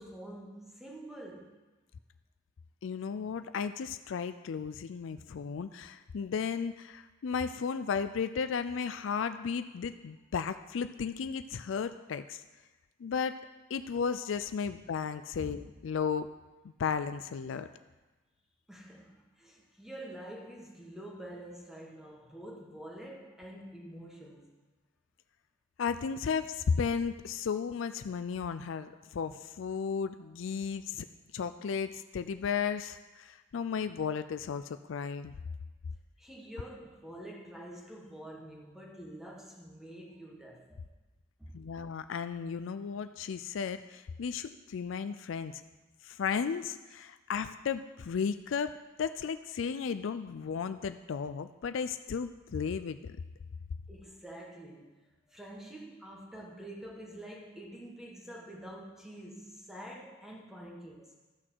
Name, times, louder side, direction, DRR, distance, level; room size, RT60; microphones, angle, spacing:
voice 1, 0.0-1.5 14.6-14.7 15.4-15.6 18.7-24.5 36.2-40.9 41.4-41.6 53.9-54.9 55.3-61.2, right 1 dB, ahead, -3 dB, 1.5 m, -47 dB
voice 2, 2.8-12.4 13.0-13.4 13.7-16.3 16.8-17.7 25.8-31.1 31.3-35.3 41.5-45.6 46.0-48.7 49.0-53.2, left 6 dB, 70° left, 11 dB, 0.4 m, -34 dB
13.0 x 6.2 x 4.6 m, 1.2 s
head